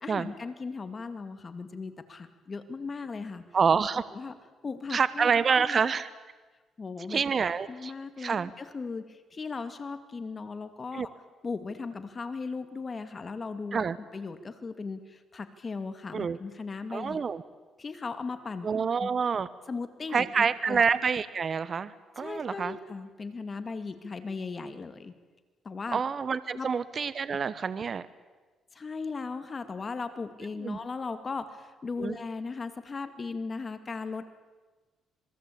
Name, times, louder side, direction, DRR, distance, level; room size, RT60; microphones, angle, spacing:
voice 1, 0.0-3.4 4.1-4.3 4.6-5.8 6.8-7.2 7.7-11.1 11.4-13.8 14.1-17.2 17.8-18.7 19.0-19.1 19.7-20.8 22.2-25.1 25.6-26.0 26.5-26.7 28.7-34.3, left 4 dB, 35° left, 10 dB, 2.2 m, -37 dB
voice 2, 3.5-4.0 4.9-6.1 7.1-7.9 8.2-8.5 10.9-11.1 13.7-14.0 16.1-16.4 16.9-17.4 18.6-19.5 20.1-22.8 25.9-28.1 30.6-30.8 32.0-32.2, right 6 dB, 45° right, 15 dB, 1.1 m, -27 dB
26.5 x 21.0 x 8.6 m, 1.3 s
cardioid pair, 90°, 0 cm